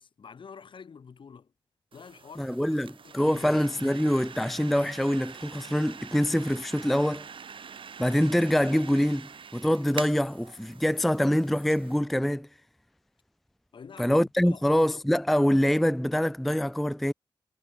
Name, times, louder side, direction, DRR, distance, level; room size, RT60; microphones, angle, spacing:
voice 1, 0.0-1.5 1.9-2.7 3.0-3.6 13.7-14.6, left 6 dB, 65° left, 6.5 m, -48 dB
sound 1, 1.9-12.0, right 6 dB, 70° right, 3.1 m, -45 dB
voice 2, 2.4-7.3 8.0-12.5 14.0-17.1, equal, ahead, 0.3 m, -25 dB
wide cardioid pair, 140°, 9 cm